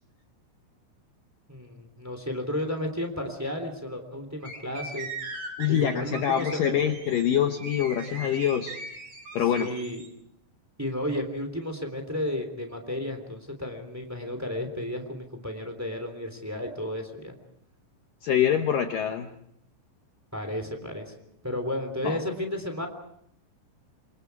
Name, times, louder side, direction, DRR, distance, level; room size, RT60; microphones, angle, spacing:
voice 1, 1.5-5.1 5.7-6.9 9.4-10.0 10.8-17.3 20.3-21.1 21.4-22.9, left 1 dB, 5° right, 5 dB, 2.2 m, -33 dB
sound 1, 4.4-10.1, right 2 dB, 45° right, 5.0 m, -40 dB
voice 2, 5.6-8.8 9.4-9.7 18.2-19.3 22.0-22.2, left 9 dB, 85° left, 5 dB, 1.9 m, -25 dB
28.5 x 25.5 x 4.8 m, 0.72 s
omnidirectional pair, 5.5 m